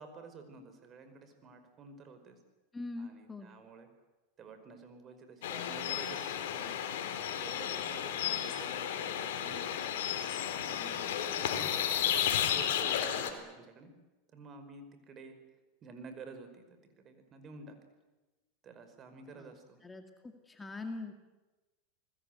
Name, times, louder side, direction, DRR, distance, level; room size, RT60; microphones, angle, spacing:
voice 1, 0.0-2.4 3.0-3.9 4.4-6.9 7.4-10.0 10.7-13.9 14.3-15.4 15.8-16.6 17.0-17.8 18.6-19.8, right 4 dB, 35° right, 8 dB, 5.2 m, -51 dB
voice 2, 2.7-3.5 8.2-8.5 19.4-19.5 19.8-21.1, left 3 dB, 15° left, 5 dB, 2.4 m, -43 dB
sound 1, 5.4-13.3, left 9 dB, 75° left, 3.7 m, -33 dB
28.0 x 20.5 x 8.1 m, 1.1 s
supercardioid pair, 120°, 0 cm